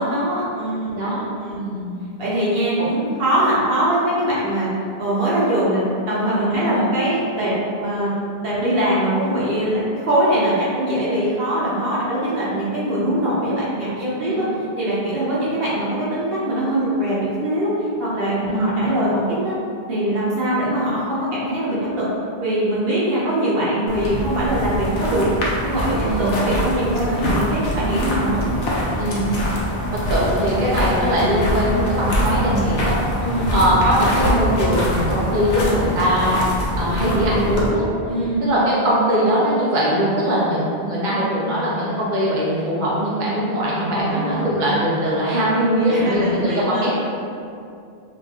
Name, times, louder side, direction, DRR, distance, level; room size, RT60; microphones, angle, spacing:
voice 1, 0.0-0.9 1.4-1.6 2.2-4.7 5.0-7.5 7.8-8.1 8.4-14.5 14.8-17.7 18.0-19.5 19.9-22.1 22.4-25.3 25.6-28.4 33.2-33.5 38.1-38.4 43.8-44.5 45.9-46.9, right 1 dB, 70° right, -8 dB, 1.2 m, -22 dB
voice 2, 0.9-1.3 1.6-1.9 6.5-6.7 14.4-14.5 18.5-18.7 26.0-26.5 29.0-29.4 29.9-33.0 33.5-36.5 36.8-37.9 38.4-46.9, equal, 55° right, -7 dB, 0.7 m, -21 dB
sound 1, 23.9-37.7, equal, 85° left, 0.9 m, -24 dB
2.9 x 2.5 x 3.5 m, 2.5 s
omnidirectional pair, 1.0 m